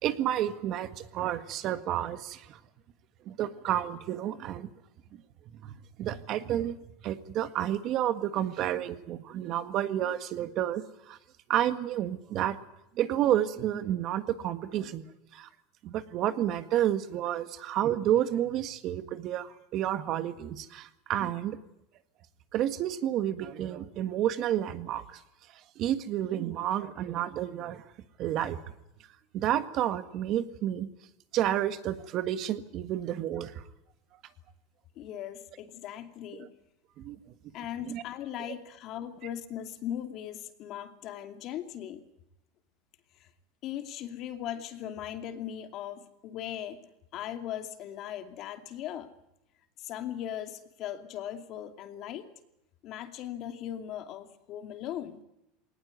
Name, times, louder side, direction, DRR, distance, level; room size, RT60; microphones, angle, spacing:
voice 1, 0.0-2.6 3.3-4.7 5.6-6.8 7.0-11.2 11.5-12.6 13.0-15.1 15.3-15.5 15.8-21.6 22.5-25.2 25.8-27.8 28.2-28.6 29.3-30.9 31.3-33.6 37.0-37.2 37.9-38.0, right 11 dB, 45° right, 11 dB, 1.7 m, -30 dB
voice 2, 34.9-36.5 37.5-42.0 43.1-43.3 43.6-46.8 47.1-49.1 49.8-52.3 52.8-55.2, left 10 dB, 50° left, 8 dB, 2.6 m, -39 dB
20.5 x 19.0 x 9.5 m, 0.86 s
supercardioid pair, 130°, 0 cm